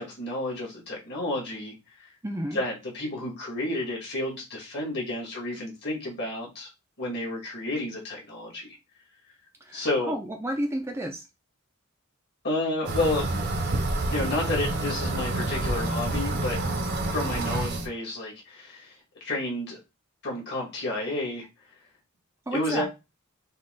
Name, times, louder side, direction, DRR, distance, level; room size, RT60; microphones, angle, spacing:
voice 1, 0.0-1.7 2.0-2.1 2.5-6.7 7.0-8.7 9.7-10.1 12.4-13.3 14.1-16.6 17.1-19.8 20.2-21.5 22.5-22.9, left 2 dB, 50° left, -2 dB, 2.2 m, -31 dB
voice 2, 2.2-2.6 9.6-11.2 22.5-22.8, right 1 dB, 10° right, 3 dB, 0.5 m, -31 dB
sound 1, 12.8-17.9, right 2 dB, 50° right, 0.7 m, -28 dB
5.3 x 2.4 x 3.9 m, 0.26 s
head